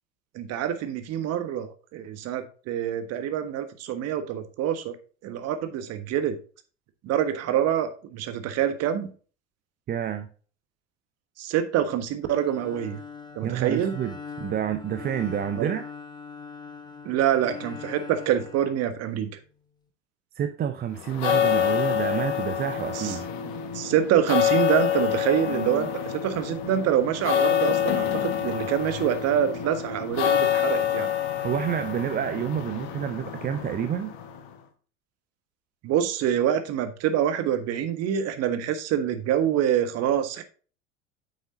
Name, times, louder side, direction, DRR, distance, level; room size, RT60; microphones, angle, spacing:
voice 1, 0.3-5.0 5.2-6.4 7.0-9.1 11.4-13.0 13.3-14.0 15.6-15.7 17.0-19.3 22.9-23.2 23.7-31.1 35.8-40.4, right 10 dB, 40° right, 1.4 m, -26 dB
voice 2, 9.9-10.3 13.4-15.8 20.4-23.3 31.4-34.1, right 9 dB, 25° right, 0.7 m, -29 dB
Bowed string instrument, 12.2-19.4, left 5 dB, 10° left, 1.4 m, -42 dB
sound 1, 21.0-34.5, left 10 dB, 55° left, 1.5 m, -27 dB
9.2 x 7.1 x 2.7 m
figure-of-eight pair, 80°, 38 cm